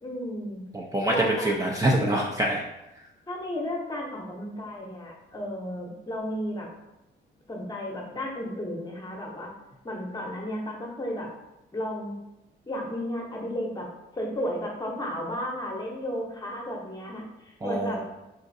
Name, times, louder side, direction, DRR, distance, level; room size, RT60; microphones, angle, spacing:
voice 1, 0.0-0.6 1.1-1.5 3.3-6.7 7.5-9.5 9.8-11.3 11.7-12.1 12.7-13.9 14.1-18.0, equal, 20° left, -1 dB, 0.8 m, -33 dB
voice 2, 0.7-2.6 17.6-18.0, right 1 dB, 15° right, -2 dB, 0.4 m, -25 dB
3.9 x 2.4 x 2.6 m, 0.93 s
cardioid pair, 90°, 20 cm